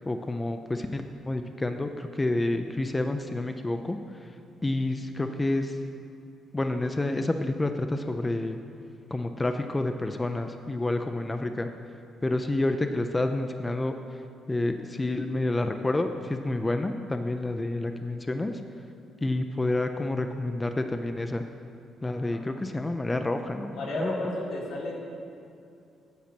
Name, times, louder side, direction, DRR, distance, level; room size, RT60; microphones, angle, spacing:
voice 1, 0.1-4.0 4.6-5.8 6.5-8.6 9.1-11.7 12.2-14.0 14.5-18.5 19.2-21.4 22.0-24.1, left 2 dB, 20° left, 6 dB, 0.5 m, -29 dB
voice 2, 23.7-24.9, left 2 dB, 85° left, -5 dB, 2.3 m, -32 dB
8.5 x 7.3 x 6.0 m, 2.5 s
cardioid pair, 90°, 0 cm